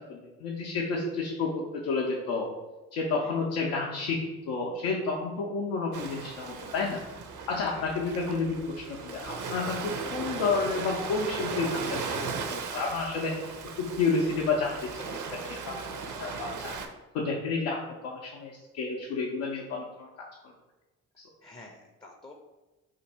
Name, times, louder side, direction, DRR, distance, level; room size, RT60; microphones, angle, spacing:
voice 1, 0.0-2.5 2.9-7.0 7.5-8.6 8.9-12.2 12.5-13.5 13.8-15.8 16.2-16.8 17.1-20.5 21.2-21.3, left 4 dB, 90° left, -3 dB, 0.6 m, -30 dB
Ocean, 5.9-16.9, right 5 dB, 55° right, 0.5 m, -37 dB
voice 2, 7.5-7.9 21.4-22.3, left 1 dB, 15° left, 1 dB, 0.4 m, -49 dB
2.5 x 2.5 x 4.1 m, 1.1 s
supercardioid pair, 55°, 37 cm